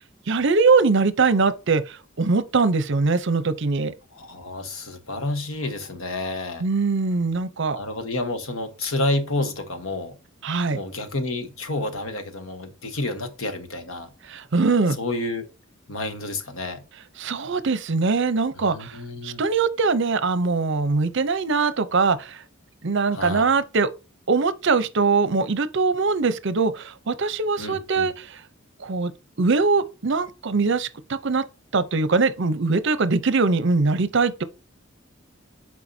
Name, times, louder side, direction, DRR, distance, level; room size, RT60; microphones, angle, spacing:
voice 1, 0.3-3.9 6.6-7.8 10.4-10.8 14.2-15.0 17.2-19.0 19.2-22.4 22.8-23.9 24.3-28.4 28.8-29.1 29.4-31.4 31.7-34.4, right 4 dB, 60° right, 0.7 m, -22 dB
voice 2, 4.1-6.6 7.7-10.2 10.7-14.1 15.0-15.5 15.9-16.8 18.6-19.4 23.1-23.5 27.6-28.1, left 2 dB, 90° left, 1.3 m, -29 dB
11.5 x 4.6 x 2.7 m
head